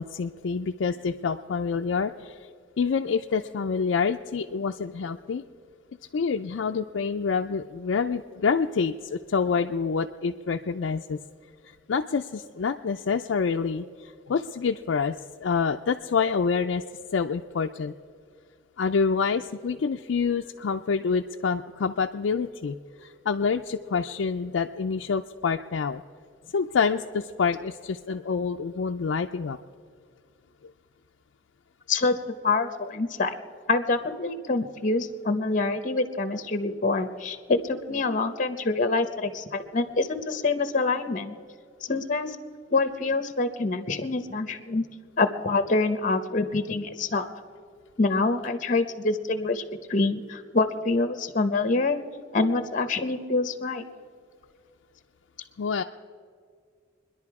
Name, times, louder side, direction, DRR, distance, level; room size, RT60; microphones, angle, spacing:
voice 1, 0.0-2.4 2.8-5.4 6.1-11.2 11.9-15.2 15.4-16.8 17.1-17.9 18.8-26.0 26.5-29.6 55.6-55.8, left 5 dB, 75° left, 3 dB, 0.4 m, -27 dB
voice 2, 31.9-33.3 33.7-41.3 41.9-42.4 42.7-44.8 45.2-47.3 48.0-49.6 49.9-52.0 52.3-53.8, left 3 dB, 45° left, 9 dB, 0.9 m, -26 dB
24.5 x 10.5 x 4.8 m, 2.1 s
head